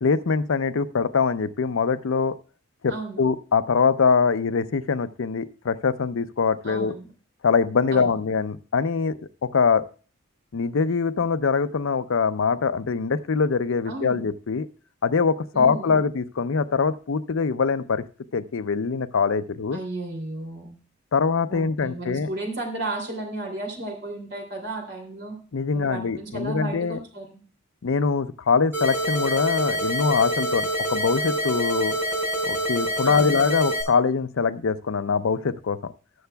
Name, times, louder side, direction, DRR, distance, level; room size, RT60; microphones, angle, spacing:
voice 1, 0.0-2.3 2.8-6.9 7.4-9.9 10.5-14.7 15.0-18.0 18.3-19.8 21.1-22.3 25.5-27.0 27.8-32.0 32.5-35.9, left 5 dB, 70° left, 12 dB, 0.5 m, -23 dB
voice 2, 2.9-3.2 6.6-7.1 7.9-8.1 13.8-14.2 15.5-16.0 19.7-20.8 21.5-25.4 25.7-27.3 33.0-33.3, right 2 dB, 55° right, 2 dB, 2.9 m, -34 dB
sound 1, 28.7-33.8, right 1 dB, 10° right, 5.0 m, -26 dB
19.5 x 6.8 x 2.3 m, 0.39 s
head